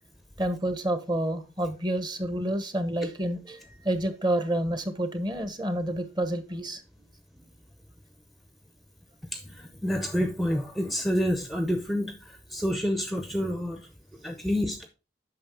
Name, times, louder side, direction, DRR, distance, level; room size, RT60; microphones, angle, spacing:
voice 1, 0.4-6.8, right 1 dB, 25° right, 10 dB, 0.9 m, -29 dB
voice 2, 9.3-13.8 14.2-14.8, equal, ahead, 6 dB, 0.6 m, -28 dB
8.7 x 6.0 x 3.6 m, 0.32 s
head